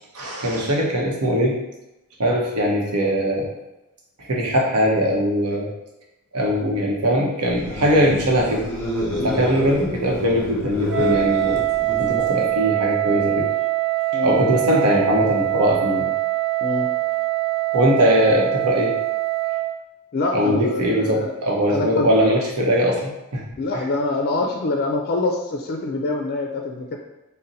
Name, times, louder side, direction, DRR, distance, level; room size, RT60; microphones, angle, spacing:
voice 1, 0.1-1.6 2.2-3.5 4.2-5.7 6.3-8.7 9.2-11.6 12.0-13.5 14.2-16.1 17.7-19.0 20.3-23.4, equal, 85° right, -1 dB, 0.8 m, -20 dB
sound 1, 7.5-12.6, left 1 dB, 10° left, 1.1 m, -29 dB
Wind instrument woodwind instrument, 10.9-19.8, right 17 dB, 45° right, 0.4 m, -23 dB
voice 2, 20.1-21.3 21.7-22.1 23.6-27.0, left 2 dB, 45° left, 2 dB, 0.4 m, -25 dB
4.0 x 2.1 x 3.9 m, 0.97 s
head